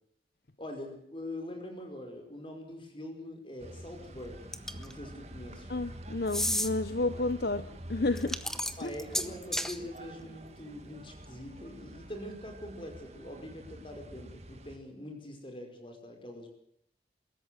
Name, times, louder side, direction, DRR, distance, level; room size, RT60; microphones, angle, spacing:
voice 1, 0.6-5.7 8.8-16.5, left 1 dB, 30° left, 4 dB, 5.1 m, -43 dB
sound 1, 3.6-14.8, right 1 dB, 35° right, 2.1 m, -46 dB
sound 2, 4.5-4.9 6.3-6.7 8.2-9.8, left 1 dB, 5° left, 0.8 m, -32 dB
voice 2, 5.7-8.4 8.8-8.9, left 2 dB, 60° left, 12 dB, 0.8 m, -31 dB
23.0 x 14.0 x 9.4 m, 0.73 s
head